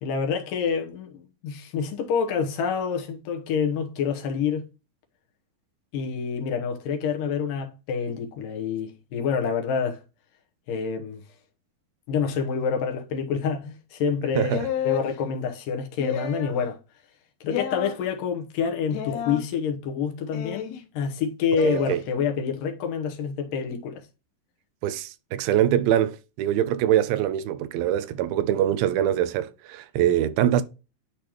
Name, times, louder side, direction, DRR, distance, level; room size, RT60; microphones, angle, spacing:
voice 1, 0.0-4.6 5.9-10.0 10.7-11.2 12.1-16.8 17.4-24.0, left 6 dB, 70° left, 2.3 m, -27 dB
voice 2, 14.4-14.7 21.6-22.0 24.8-30.6, right 11 dB, 85° right, 2.1 m, -23 dB
sound 1, 14.5-15.1 16.0-16.6 17.5-17.9 18.9-19.4 20.3-20.8 21.6-21.9, left 8 dB, 85° left, 3.0 m, -31 dB
10.0 x 3.4 x 2.9 m
omnidirectional pair, 4.6 m